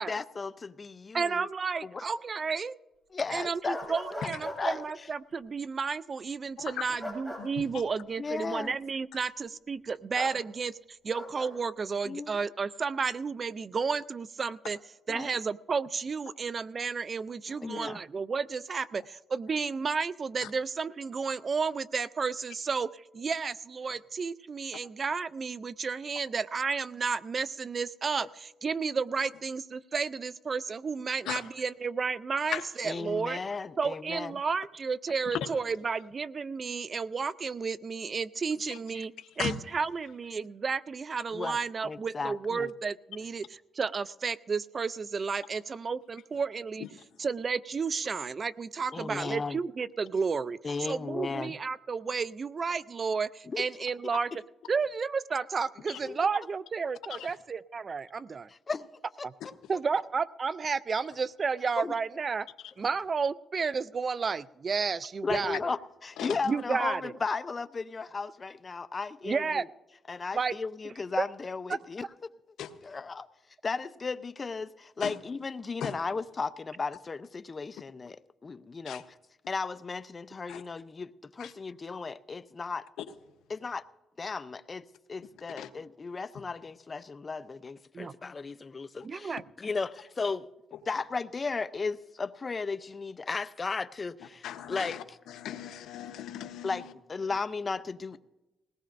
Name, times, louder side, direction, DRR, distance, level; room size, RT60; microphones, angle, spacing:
voice 1, 0.0-1.5 1.9-2.0 3.1-3.8 4.2-4.3 4.6-4.8 8.2-8.8 12.1-12.3 15.1-15.3 17.5-18.0 32.8-34.3 41.3-41.6 41.8-42.7 48.9-49.6 50.6-51.6 53.5-53.7 56.0-56.2 58.7-58.9 59.2-59.5 61.8-61.9 65.2-69.7 70.1-72.1 72.8-73.3 73.6-79.2 79.5-82.9 83.5-83.8 84.2-90.5 90.9-95.2 96.6-98.2, left 4 dB, 30° left, 13 dB, 0.6 m, -35 dB
voice 2, 1.1-2.7 3.3-14.8 15.1-33.4 33.8-46.9 47.2-54.3 54.7-58.5 59.2-59.3 59.7-62.5 62.8-65.6 66.5-67.1 69.2-69.6 70.3-70.5 70.8-71.3 71.7-71.8 87.9-88.1 89.0-89.4, right 5 dB, 40° right, 17 dB, 0.4 m, -32 dB
sound 1, 3.7-4.8 7.0-7.4 10.1-10.3 11.1-11.5, equal, 10° right, 6.7 m, -39 dB
voice 3, 6.6-6.9 7.4-7.5 28.2-28.3 31.3-31.4 32.5-32.6 38.7-38.8 39.4-39.5 55.9-56.0 57.1-57.3 66.2-66.4 72.6-72.7 75.0-75.1 75.8-75.9 78.9-79.0 80.5-80.6 81.4-81.5 85.6-85.7 94.4-96.8, left 10 dB, 80° left, 9 dB, 0.9 m, -37 dB
20.5 x 18.0 x 2.6 m, 1.0 s
cardioid pair, 90°, 0 cm